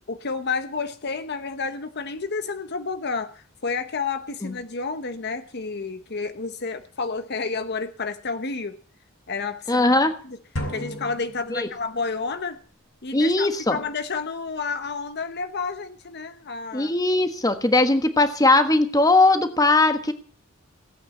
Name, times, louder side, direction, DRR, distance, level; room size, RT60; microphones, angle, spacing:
voice 1, 0.1-8.8 9.3-9.8 10.2-10.4 10.7-12.6 13.0-16.9, left 4 dB, 50° left, 9 dB, 1.0 m, -30 dB
voice 2, 9.7-10.1 11.5-11.7 13.1-13.8 16.7-20.1, left 2 dB, 15° left, 8 dB, 1.4 m, -19 dB
sound 1, 10.6-12.2, equal, 70° left, 3.9 m, -34 dB
17.0 x 8.9 x 7.7 m, 0.43 s
head